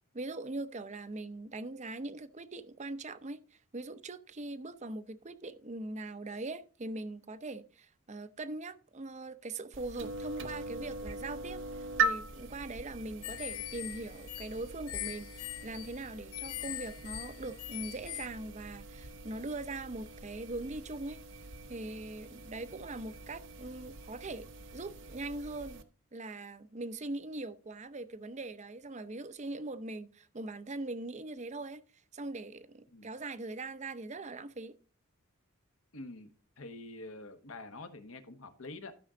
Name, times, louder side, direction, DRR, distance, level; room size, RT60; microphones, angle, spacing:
voice 1, 0.1-11.6 12.0-21.2 21.7-24.5 24.7-25.8 26.1-31.8 32.1-34.8, right 2 dB, 35° right, 0.7 m, -41 dB
sound 1, 9.7-25.8, right 3 dB, 60° right, 0.9 m, -41 dB
sound 2, 13.2-18.3, left 17 dB, 90° left, 0.4 m, -42 dB
voice 2, 35.9-36.3 36.6-38.9, left 2 dB, 70° left, 1.2 m, -46 dB
13.0 x 6.2 x 3.8 m
head